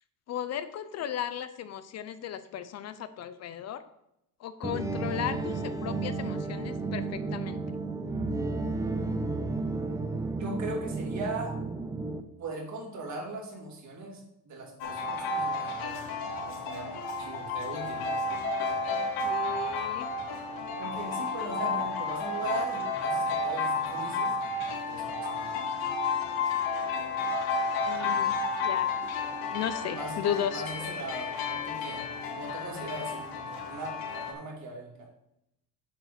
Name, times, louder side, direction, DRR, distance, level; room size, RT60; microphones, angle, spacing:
voice 1, 0.3-3.8 4.4-7.6 19.2-20.1 27.8-28.4 28.6-28.9 29.5-30.6, left 9 dB, 45° left, 12 dB, 0.5 m, -35 dB
sound 1, 4.6-12.2, right 3 dB, 10° right, 0.6 m, -32 dB
voice 2, 10.3-11.6 12.4-18.2 20.8-25.6 25.9-26.0 29.9-30.2 30.5-34.9, right 2 dB, 50° right, -2 dB, 3.0 m, -39 dB
sound 2, 14.8-34.3, left 3 dB, 75° left, 1.9 m, -32 dB
7.4 x 4.8 x 6.7 m, 0.82 s
cardioid pair, 120°, 37 cm